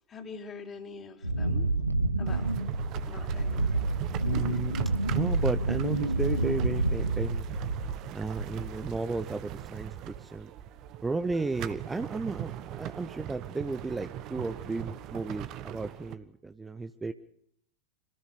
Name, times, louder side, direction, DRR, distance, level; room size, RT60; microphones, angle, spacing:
voice 1, 0.1-1.8 2.2-2.5 3.0-3.9 4.4-4.5, left 5 dB, 25° left, 4 dB, 3.5 m, -44 dB
Wind, 1.2-8.1 8.4-8.9, right 2 dB, 85° right, 1.5 m, -29 dB
sound 1, 2.2-16.1, right 11 dB, 35° right, 1.3 m, -40 dB
voice 2, 4.2-4.7 5.1-7.5 8.1-10.5 11.0-17.1, right 3 dB, 10° right, 10 dB, 0.9 m, -34 dB
26.5 x 18.5 x 6.7 m, 0.71 s
figure-of-eight pair, 90°, 0 cm